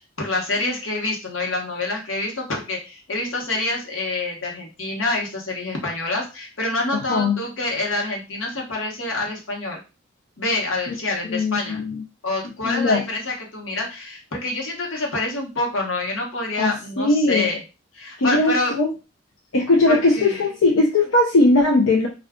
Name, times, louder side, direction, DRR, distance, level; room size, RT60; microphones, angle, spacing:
voice 1, 0.2-9.8 10.4-11.8 12.2-17.6 17.9-18.8 19.9-20.4, left 2 dB, 65° left, 0 dB, 1.0 m, -26 dB
voice 2, 11.2-12.0 12.6-13.0 16.6-17.5 18.2-18.9 19.5-22.1, left 2 dB, 80° left, -1 dB, 0.5 m, -19 dB
2.3 x 2.3 x 3.5 m, 0.29 s
head